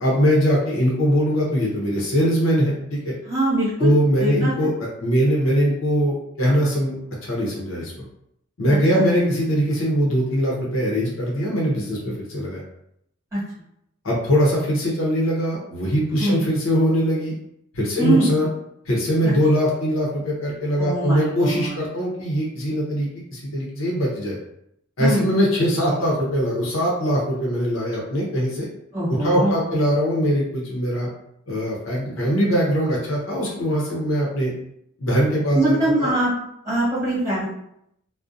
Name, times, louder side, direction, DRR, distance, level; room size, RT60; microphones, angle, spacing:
voice 1, 0.0-3.1 3.8-4.7 5.0-7.9 8.6-12.6 14.0-17.3 17.7-18.5 18.9-24.4 25.0-28.7 29.2-31.1 31.5-34.5 35.0-35.6 36.0-36.1, equal, 75° left, -4 dB, 0.7 m, -21 dB
voice 2, 3.3-3.9 4.2-4.7 8.7-9.0 13.3-13.4 16.2-16.4 18.0-18.3 19.2-19.3 20.8-21.8 25.0-25.3 28.9-29.6 35.5-36.3 36.6-37.5, right 1 dB, 15° right, -8 dB, 1.2 m, -22 dB
2.5 x 2.1 x 2.5 m, 0.76 s
head